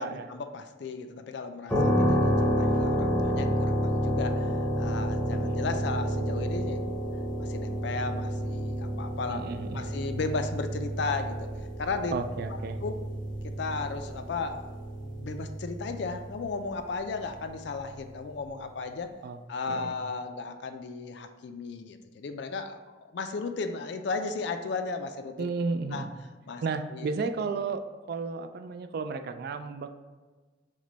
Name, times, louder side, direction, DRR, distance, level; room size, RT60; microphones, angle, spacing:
voice 1, 0.0-7.0 7.4-11.5 11.8-12.2 12.5-13.0 13.4-14.7 15.0-19.1 19.5-22.8 23.1-25.5 25.9-26.0 26.5-26.6 26.9-27.1, left 4 dB, 65° left, 8 dB, 0.4 m, -35 dB
sound 1, 1.7-16.4, equal, 5° left, 0.8 m, -29 dB
voice 2, 9.3-9.8 12.1-12.8 19.2-19.4 19.7-19.9 25.4-26.1 26.6-29.9, right 4 dB, 55° right, 8 dB, 0.3 m, -33 dB
6.0 x 2.2 x 3.9 m, 1.3 s
head